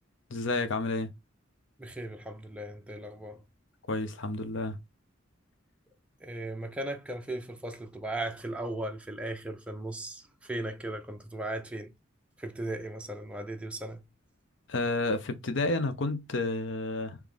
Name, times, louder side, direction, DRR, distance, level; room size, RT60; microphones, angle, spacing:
voice 1, 0.3-1.1 3.9-4.8 14.7-17.2, left 2 dB, 65° left, 0.7 m, -30 dB
voice 2, 1.8-3.4 6.2-11.9 12.4-14.0, right 1 dB, 5° right, 0.5 m, -37 dB
3.6 x 3.1 x 3.5 m
head